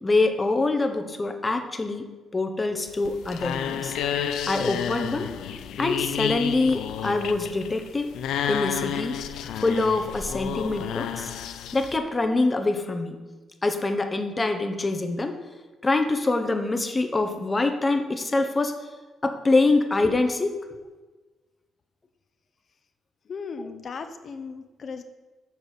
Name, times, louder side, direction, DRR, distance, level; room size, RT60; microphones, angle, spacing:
voice 1, 0.0-2.1 2.3-4.0 4.5-5.3 5.8-8.1 8.5-9.2 9.6-11.3 11.7-13.2 13.6-15.4 15.8-18.7 19.2-20.5 23.6-23.7, left 3 dB, 20° left, 6 dB, 1.1 m, -25 dB
sound 1, 2.9-12.0, left 9 dB, 80° left, 0.5 m, -31 dB
voice 2, 23.3-25.0, left 5 dB, 50° left, 8 dB, 0.8 m, -36 dB
7.2 x 6.1 x 6.9 m, 1.2 s
cardioid pair, 90°, 0 cm